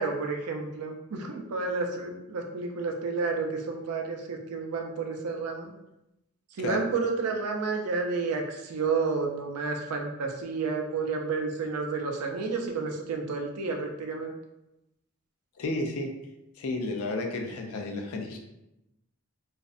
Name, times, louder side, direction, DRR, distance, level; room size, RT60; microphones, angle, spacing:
voice 1, 0.0-5.7 6.6-14.3, right 4 dB, 85° right, 3 dB, 0.4 m, -31 dB
voice 2, 15.6-16.1 16.6-18.4, left 2 dB, 70° left, 3 dB, 0.4 m, -32 dB
2.5 x 2.0 x 2.4 m, 0.90 s
head